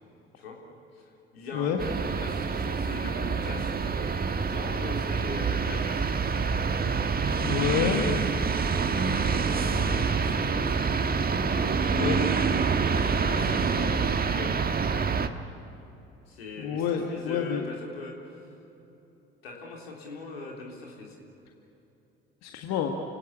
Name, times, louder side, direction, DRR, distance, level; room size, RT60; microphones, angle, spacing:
voice 1, 0.9-3.7 4.5-6.0 7.2-10.7 13.2-14.5 16.3-18.2 19.4-21.2, left 3 dB, 85° left, -1 dB, 3.6 m, -40 dB
sound 1, 1.8-15.3, right 5 dB, 30° right, 1.5 m, -26 dB
voice 2, 7.4-8.0 11.6-12.2 16.6-17.7 22.4-22.9, left 8 dB, 65° left, 3 dB, 1.8 m, -28 dB
29.0 x 17.5 x 8.6 m, 2.9 s
hypercardioid pair, 55°, 29 cm